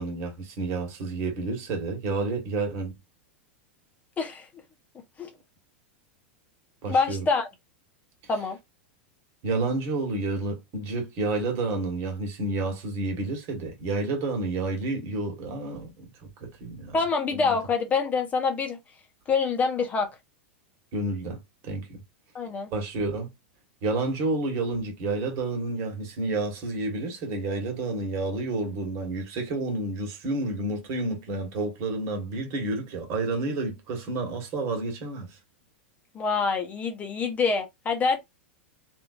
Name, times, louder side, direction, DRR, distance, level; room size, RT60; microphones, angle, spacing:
voice 1, 0.0-2.9 6.8-7.3 9.4-16.1 16.4-16.9 17.3-17.5 20.9-22.0 22.7-23.3 23.8-35.4, right 2 dB, 45° right, 1.5 m, -30 dB
voice 2, 4.2-4.5 5.2-5.3 6.9-7.5 8.3-8.6 16.9-18.8 19.3-20.1 22.3-22.7 36.1-38.2, left 4 dB, 25° left, 0.8 m, -26 dB
3.0 x 2.6 x 2.5 m
hypercardioid pair, 95°, 6 cm